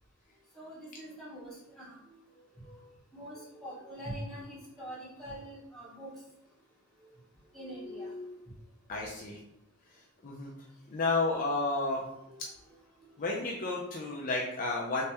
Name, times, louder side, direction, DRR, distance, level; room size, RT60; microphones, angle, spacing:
voice 1, 0.5-1.5 1.8-1.9 2.5-2.8 3.1-6.1 7.5-8.4 12.3-12.4, equal, ahead, -6 dB, 1.4 m, -43 dB
voice 2, 8.9-9.4 10.2-10.5 10.9-12.0 13.2-15.0, left 3 dB, 40° left, -2 dB, 0.4 m, -31 dB
3.4 x 3.2 x 2.9 m, 0.85 s
head